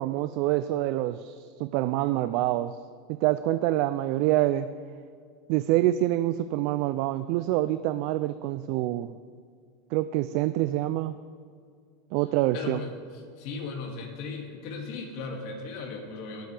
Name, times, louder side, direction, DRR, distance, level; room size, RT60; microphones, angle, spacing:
voice 1, 0.0-2.8 3.1-4.7 5.5-9.2 9.9-11.2 12.1-12.8, right 15 dB, 60° right, 12 dB, 0.3 m, -26 dB
voice 2, 12.5-16.5, left 4 dB, 60° left, 2 dB, 2.2 m, -37 dB
18.5 x 7.7 x 3.4 m, 2.2 s
supercardioid pair, 125°, 0 cm